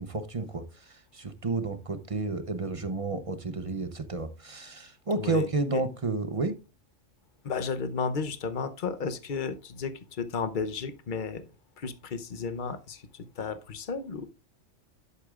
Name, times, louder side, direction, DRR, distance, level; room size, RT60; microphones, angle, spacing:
voice 1, 0.0-6.5, right 3 dB, 35° right, 0.7 m, -31 dB
voice 2, 5.2-5.8 7.4-11.4 11.8-14.3, left 5 dB, 45° left, 0.9 m, -33 dB
11.0 x 8.1 x 2.4 m
omnidirectional pair, 1.2 m